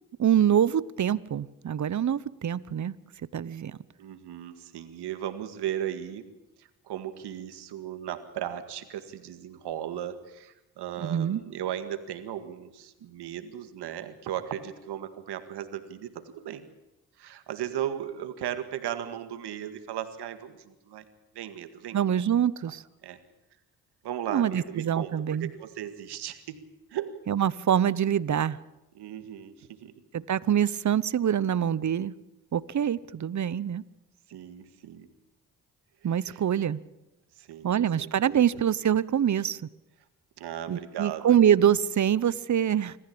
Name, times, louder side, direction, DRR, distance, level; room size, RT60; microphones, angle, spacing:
voice 1, 0.2-2.9 3.3-3.8 11.0-11.4 21.9-22.8 24.3-25.5 27.3-28.6 30.1-32.2 32.5-33.8 36.0-36.8 37.6-39.6 40.7-43.0, right 9 dB, 45° right, 19 dB, 0.9 m, -25 dB
voice 2, 4.0-6.2 6.6-16.7 17.2-21.1 21.4-22.2 23.0-23.2 24.0-25.1 25.4-26.6 26.9-27.2 29.0-29.9 34.3-35.1 36.2-36.4 37.4-38.4 40.4-41.4, right 10 dB, 80° right, 9 dB, 2.0 m, -36 dB
25.5 x 14.5 x 8.6 m, 0.98 s
supercardioid pair, 55°, 40 cm